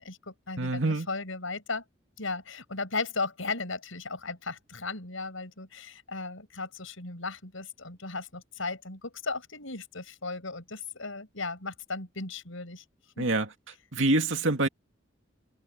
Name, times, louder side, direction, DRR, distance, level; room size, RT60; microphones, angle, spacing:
voice 1, 0.0-1.8 2.2-12.8 13.2-13.3, left 3 dB, 85° left, 6.1 m, -36 dB
voice 2, 0.6-1.1 13.2-13.5 13.9-14.7, right 2 dB, 70° right, 2.3 m, -25 dB
head